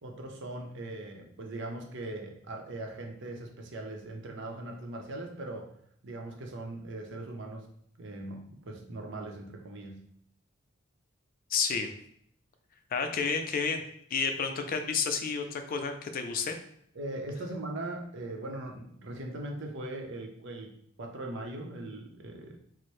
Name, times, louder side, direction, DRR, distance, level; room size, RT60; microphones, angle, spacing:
voice 1, 0.0-5.7 6.0-7.6 8.0-10.0 17.0-22.6, right 2 dB, 60° right, 2 dB, 0.6 m, -40 dB
voice 2, 11.5-11.9 12.9-13.8 14.1-16.6, left 5 dB, 45° left, 6 dB, 0.4 m, -30 dB
4.4 x 2.0 x 3.1 m, 0.67 s
head